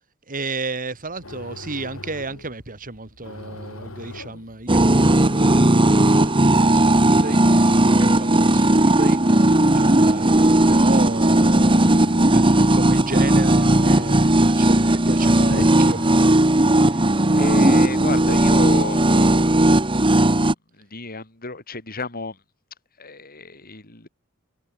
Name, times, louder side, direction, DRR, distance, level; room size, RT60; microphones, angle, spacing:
voice 1, 0.3-7.4 7.9-9.2 9.7-11.8 12.3-16.0, right 2 dB, 40° right, 3.5 m, -32 dB
sound 1, 1.0-18.5, left 2 dB, 75° left, 4.9 m, -40 dB
sound 2, 4.7-20.5, right 1 dB, 25° right, 1.6 m, -16 dB
voice 2, 16.8-19.6 20.7-22.4 23.0-24.1, left 2 dB, 45° left, 6.7 m, -31 dB
head